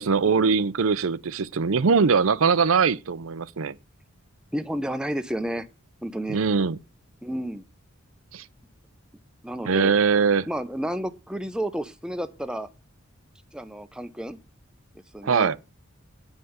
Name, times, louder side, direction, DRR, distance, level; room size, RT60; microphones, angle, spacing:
voice 1, 0.0-3.8 6.3-6.8 8.3-8.4 9.6-10.5 15.2-15.6, right 5 dB, 75° right, 0.6 m, -21 dB
voice 2, 4.5-5.7 6.0-6.4 7.2-7.6 9.4-9.9 10.5-12.7 13.5-14.4 15.1-15.6, right 1 dB, 5° right, 0.7 m, -31 dB
9.1 x 5.5 x 8.0 m
head